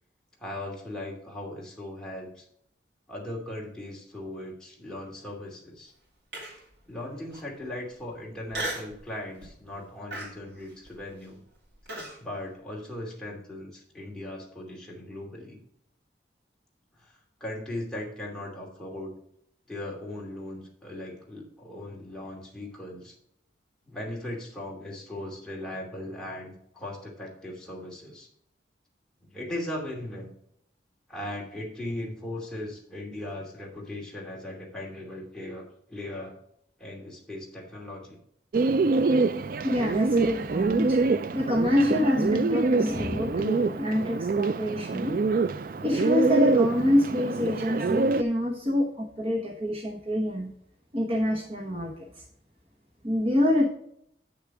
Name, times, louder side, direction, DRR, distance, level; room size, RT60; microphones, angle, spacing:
voice 1, 0.4-2.4 3.1-5.9 6.9-11.4 12.2-15.6 16.9-19.1 19.7-23.1 23.8-28.3 29.3-30.3 31.1-36.3 36.8-38.2, left 1 dB, 5° left, -3 dB, 2.6 m, -38 dB
Human voice, 6.3-6.8 7.3-7.4 8.5-9.0 9.4-9.7 10.1-12.2, right 1 dB, 75° right, 3.5 m, -36 dB
Bird, 38.5-48.2, right 3 dB, 50° right, 0.3 m, -25 dB
voice 2, 39.6-41.1 41.3-45.1 45.8-50.5 50.9-51.9 53.0-53.6, left 1 dB, 30° right, 1 dB, 1.1 m, -26 dB
8.3 x 6.8 x 4.9 m, 0.71 s
head